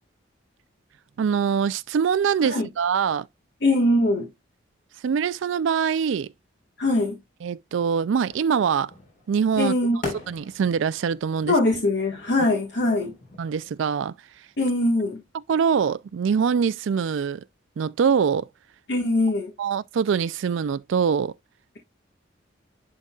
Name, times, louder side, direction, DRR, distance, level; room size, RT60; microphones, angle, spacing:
voice 1, 1.2-3.3 5.0-6.3 7.4-8.9 9.3-9.7 10.3-11.5 13.4-14.1 15.5-17.4 17.8-18.5 19.6-21.3, right 6 dB, 75° right, 0.3 m, -23 dB
voice 2, 3.6-4.3 6.8-7.2 9.6-10.2 11.5-13.2 14.6-15.2 18.9-19.5, left 1 dB, 55° left, 1.5 m, -22 dB
sound 1, 8.1-13.8, left 2 dB, 40° left, 3.8 m, -43 dB
11.0 x 4.0 x 2.3 m
head